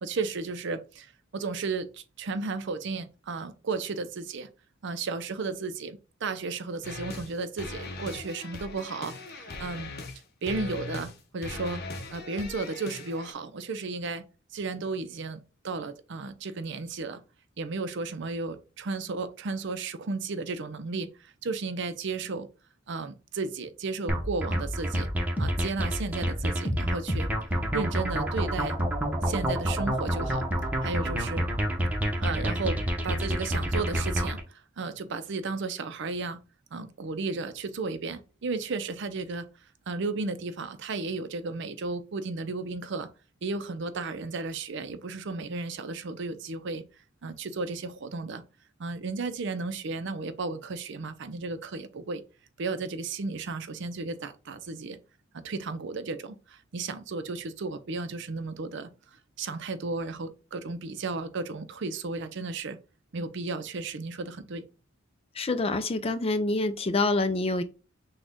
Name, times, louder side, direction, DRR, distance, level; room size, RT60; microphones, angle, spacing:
voice 1, 0.0-4.5 4.8-9.9 10.4-11.8 12.1-14.2 14.5-17.2 17.6-22.5 22.9-25.1 25.4-27.3 27.7-28.8 29.2-30.4 30.8-31.5 32.2-34.4 34.8-36.4 36.7-39.5 39.9-43.1 43.4-46.8 47.2-48.4 48.8-52.2 52.6-55.0 55.3-58.9 59.4-62.8 63.1-64.7, right 3 dB, 65° right, 0.5 m, -34 dB
sound 1, 6.8-7.3 7.6-10.2 10.5-11.1 11.4-13.3, left 3 dB, 55° left, 0.9 m, -39 dB
sound 2, 24.1-34.4, equal, 10° right, 0.9 m, -28 dB
voice 2, 65.4-67.6, left 2 dB, 30° left, 0.5 m, -26 dB
6.2 x 2.3 x 3.5 m
head